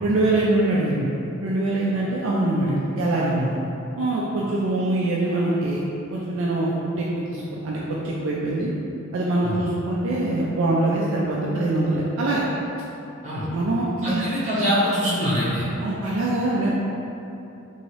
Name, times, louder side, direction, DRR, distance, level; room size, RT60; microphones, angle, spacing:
voice 1, 0.0-1.1 1.4-3.6 4.0-5.8 6.1-8.7 9.1-12.4 13.5-14.3 15.8-16.8, right 2 dB, 70° right, -5 dB, 0.3 m, -23 dB
voice 2, 14.0-15.6, equal, 35° right, -12 dB, 1.2 m, -24 dB
2.9 x 2.7 x 2.9 m, 2.8 s
head